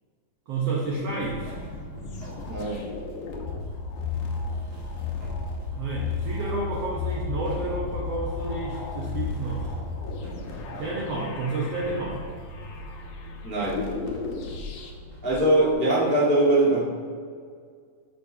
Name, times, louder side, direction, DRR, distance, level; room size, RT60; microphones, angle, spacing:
voice 1, 0.5-1.5 5.7-9.7 10.8-12.2, right 3 dB, 90° right, -3 dB, 1.3 m, -30 dB
sound 1, 0.8-14.9, left 4 dB, 75° left, 2.3 m, -34 dB
sound 2, 1.2-15.7, right 1 dB, 65° right, 3.5 m, -41 dB
voice 2, 2.5-2.9 13.4-13.8 15.2-16.8, right 1 dB, 15° left, -8 dB, 0.4 m, -22 dB
13.0 x 6.0 x 2.8 m, 2.1 s
omnidirectional pair, 4.3 m